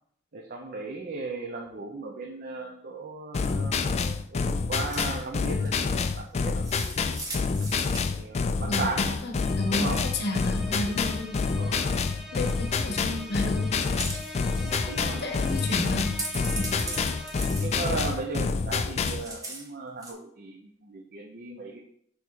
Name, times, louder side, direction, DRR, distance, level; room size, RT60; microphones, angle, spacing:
voice 1, 0.3-6.6 8.0-9.3 9.7-10.0 11.5-11.8 12.8-13.0 14.5-15.6 16.7-17.2 17.6-21.8, right 3 dB, 50° right, 1 dB, 0.6 m, -37 dB
sound 1, 3.3-19.3, left 4 dB, 35° left, 0.3 m, -28 dB
sound 2, 4.9-5.2 5.6-6.0 6.6-8.1 9.6-10.0 10.6-11.1 11.5-12.0 12.6-13.0 13.8-14.8 15.0-15.1 15.4-18.3 18.7-19.7 20.0-20.1, right 2 dB, 20° right, 1.1 m, -38 dB
voice 2, 8.7-11.5 12.3-13.8 14.8-16.1 16.5-16.7, left 2 dB, 55° left, 4 dB, 0.9 m, -32 dB
sound 3, 9.3-17.9, left 1 dB, ahead, 0.7 m, -42 dB
6.2 x 3.5 x 4.6 m, 0.68 s
head